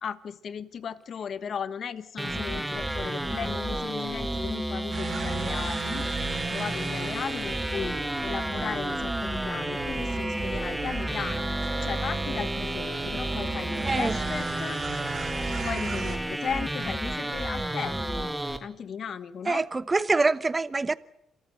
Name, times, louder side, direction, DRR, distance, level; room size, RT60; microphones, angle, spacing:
voice 1, 0.0-6.1 6.3-11.6 11.8-14.8 15.6-18.3 18.6-19.7, left 7 dB, 55° left, 1.3 m, -36 dB
sound 1, 2.2-18.6, right 1 dB, 5° right, 2.3 m, -31 dB
sound 2, 4.9-16.2, right 5 dB, 50° right, 3.8 m, -37 dB
voice 2, 13.8-14.2 19.5-21.0, right 3 dB, 25° right, 0.9 m, -25 dB
27.0 x 14.0 x 9.1 m
cardioid pair, 90°, 0 cm